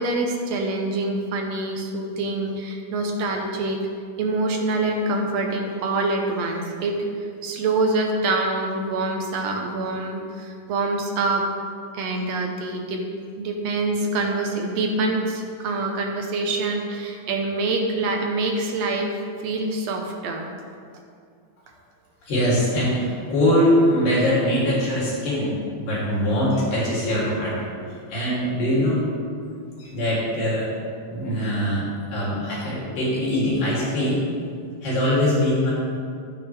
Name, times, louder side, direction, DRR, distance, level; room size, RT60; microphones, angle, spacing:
voice 1, 0.0-3.8 4.2-7.1 7.4-11.5 11.9-13.0 13.4-20.5, right 2 dB, 65° right, 2 dB, 1.7 m, -25 dB
voice 2, 22.2-27.6 27.9-29.0 29.8-30.7 31.1-34.2 34.8-35.7, equal, 90° left, -8 dB, 4.9 m, -22 dB
12.5 x 9.4 x 3.5 m, 2.3 s
omnidirectional pair, 3.7 m